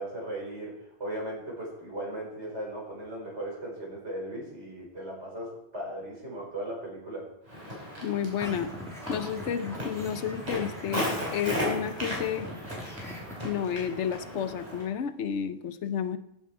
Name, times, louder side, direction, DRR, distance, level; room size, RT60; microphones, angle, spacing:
voice 1, 0.0-7.3, right 1 dB, 75° right, -4 dB, 5.5 m, -37 dB
Walk footsteps, 7.5-14.8, equal, 35° right, 4.4 m, -36 dB
voice 2, 8.0-8.7 9.1-11.0 11.3-12.5 13.4-16.2, left 8 dB, 80° left, 11 dB, 1.1 m, -31 dB
sound 1, 8.4-13.4, equal, ahead, 2.7 m, -42 dB
15.0 x 7.5 x 4.8 m, 0.79 s
omnidirectional pair, 1.2 m